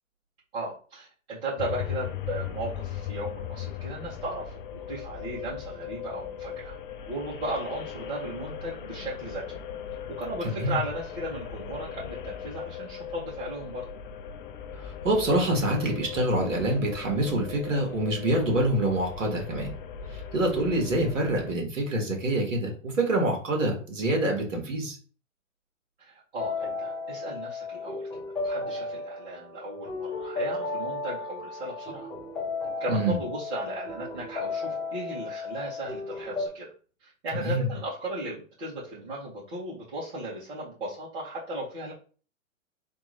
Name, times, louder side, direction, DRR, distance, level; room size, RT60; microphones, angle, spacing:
voice 1, 0.5-6.8 7.1-9.6 10.1-13.9 26.0-28.1 28.4-32.1 32.8-36.7 37.0-41.9, right 1 dB, 45° right, -9 dB, 2.1 m, -36 dB
sound 1, 1.6-21.5, left 8 dB, 40° left, 0.5 m, -38 dB
voice 2, 10.4-10.8 15.0-19.7 20.1-25.0 32.9-33.2 37.3-37.7, right 1 dB, 70° right, 1 dB, 1.9 m, -26 dB
sound 2, 26.4-36.5, left 3 dB, ahead, 1.9 m, -34 dB
3.7 x 3.0 x 4.2 m, 0.40 s
figure-of-eight pair, 110°, 40 cm